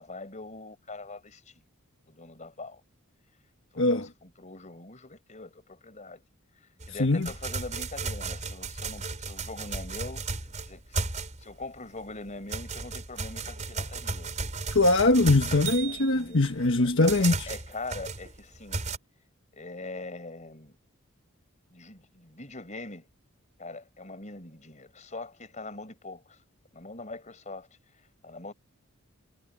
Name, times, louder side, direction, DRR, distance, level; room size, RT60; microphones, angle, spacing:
voice 1, 0.0-1.5 2.1-2.8 3.7-6.2 6.6-11.0 11.4-14.4 15.8-16.4 17.2-18.8 19.5-20.8 21.7-23.1 23.6-26.4 26.7-27.7 28.2-28.5, left 3 dB, 35° left, 4.8 m, -42 dB
voice 2, 3.8-4.1 7.0-7.3 14.7-17.5, left 2 dB, 65° left, 1.4 m, -22 dB
sound 1, 6.8-11.6 12.0-19.0, right 4 dB, 35° right, 5.2 m, -35 dB
head